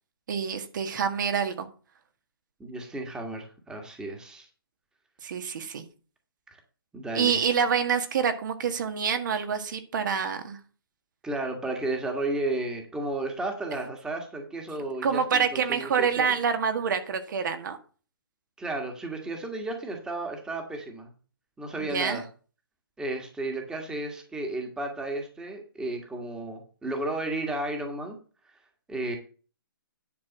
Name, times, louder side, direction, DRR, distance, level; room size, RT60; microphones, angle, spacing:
voice 1, 0.3-1.7 5.2-5.8 7.1-10.6 15.0-17.8 21.8-22.2, right 6 dB, 55° right, 7 dB, 1.6 m, -27 dB
voice 2, 2.6-4.5 6.5-6.6 6.9-7.4 11.2-16.4 18.6-21.1 21.6-22.2 23.0-28.2 28.9-29.2, right 2 dB, 5° right, 3 dB, 1.6 m, -33 dB
10.5 x 4.6 x 7.2 m, 0.38 s
hypercardioid pair, 155°, 12 cm